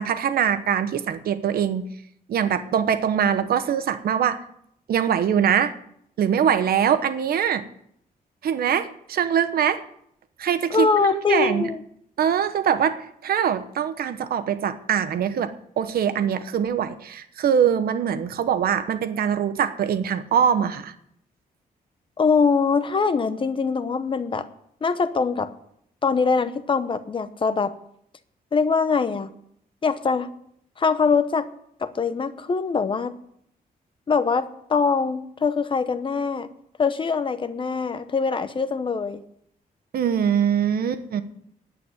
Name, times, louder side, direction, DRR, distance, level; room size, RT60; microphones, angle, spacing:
voice 1, 0.0-1.9 2.3-4.4 4.9-5.7 6.2-7.6 8.4-9.8 10.4-11.7 12.2-20.9 39.9-41.2, right 8 dB, 75° right, 11 dB, 1.0 m, -23 dB
voice 2, 10.7-11.8 22.2-24.5 24.8-25.5 26.0-27.7 28.5-29.3 29.8-30.3 30.8-31.5 31.8-33.1 34.1-36.5 36.8-39.2, left 5 dB, 35° left, 11 dB, 0.8 m, -23 dB
10.0 x 8.6 x 9.5 m, 0.71 s
wide cardioid pair, 150°, 16 cm